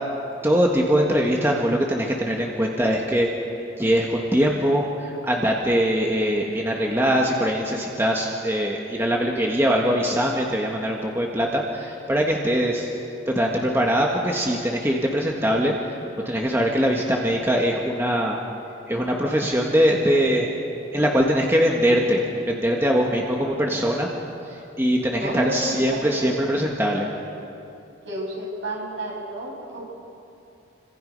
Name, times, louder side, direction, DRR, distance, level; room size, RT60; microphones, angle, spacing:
voice 1, 0.4-3.3 3.8-12.9 13.3-15.7 16.2-18.4 18.9-20.5 20.9-24.1 24.5-27.1, equal, 10° right, -1 dB, 1.6 m, -22 dB
voice 2, 25.1-26.4 28.0-29.8, right 1 dB, 65° right, -3 dB, 7.9 m, -31 dB
30.0 x 25.5 x 5.4 m, 2.8 s
head